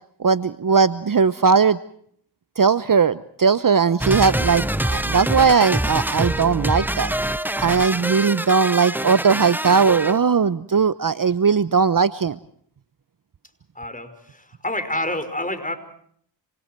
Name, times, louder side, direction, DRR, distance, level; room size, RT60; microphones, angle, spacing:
voice 1, 0.2-1.8 2.6-7.1 7.6-12.4, right 5 dB, 45° right, 15 dB, 0.9 m, -18 dB
sound 1, 4.0-10.2, right 1 dB, 5° right, 0.9 m, -25 dB
voice 2, 13.7-15.8, left 1 dB, 15° left, 9 dB, 5.4 m, -28 dB
28.0 x 27.5 x 4.6 m, 0.63 s
cardioid pair, 50°, 47 cm